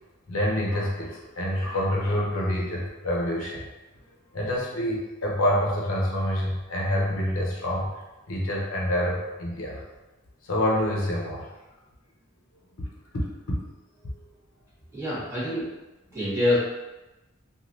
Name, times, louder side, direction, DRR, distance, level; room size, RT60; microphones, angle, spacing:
voice 1, 0.3-3.6 4.3-7.9 8.3-9.8 10.5-11.5 12.8-12.9 13.1-13.6 14.0-14.2, left 1 dB, 90° left, -3 dB, 0.7 m, -27 dB
voice 2, 14.9-15.7 16.1-16.6, left 1 dB, 15° right, -10 dB, 1.0 m, -25 dB
3.1 x 2.4 x 2.7 m, 1.0 s
head